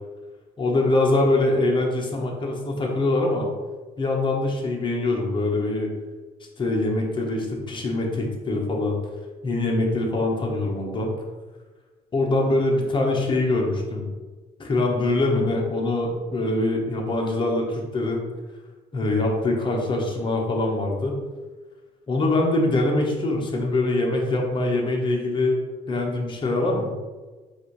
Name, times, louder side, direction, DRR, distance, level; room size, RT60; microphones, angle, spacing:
voice 1, 0.6-3.5 4.0-5.9 6.6-9.0 9.4-11.1 12.1-14.1 14.6-18.2 18.9-21.2 22.1-25.6 25.9-26.9, left 2 dB, 30° left, 0 dB, 1.0 m, -23 dB
4.2 x 2.6 x 4.7 m, 1.3 s
cardioid pair, 110°, 17 cm